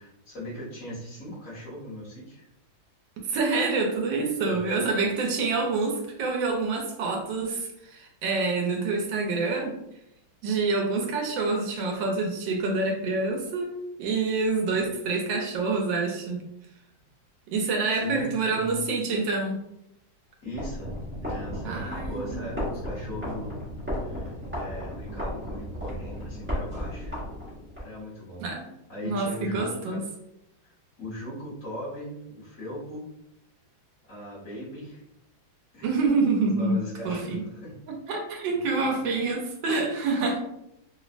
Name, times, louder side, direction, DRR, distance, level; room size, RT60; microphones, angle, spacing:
voice 1, 0.0-2.5 4.4-4.8 14.7-14.9 18.0-18.8 20.4-23.6 23.9-27.1 27.8-28.4 28.9-30.1 30.6-33.1 34.1-35.0 35.7-36.0 36.4-37.8 38.5-38.8, left 1 dB, 50° left, -8 dB, 1.3 m, -39 dB
voice 2, 3.3-9.8 10.4-13.7 14.0-16.4 17.5-19.6 21.6-22.7 28.4-28.7 29.0-30.0 35.8-36.8 37.0-37.4 37.8-40.4, right 3 dB, 80° right, 2 dB, 1.3 m, -27 dB
sound 1, 20.5-27.8, equal, 15° right, 0.4 m, -34 dB
3.3 x 2.0 x 2.4 m, 0.80 s
omnidirectional pair, 2.1 m